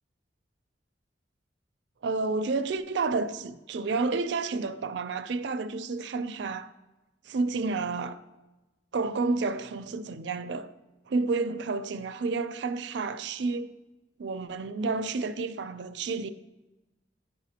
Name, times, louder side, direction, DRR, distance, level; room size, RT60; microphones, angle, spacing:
voice 1, 2.0-6.7 7.3-8.2 8.9-10.7 11.1-13.7 14.2-16.3, right 3 dB, 65° right, 0.4 m, -30 dB
10.5 x 5.0 x 2.8 m
head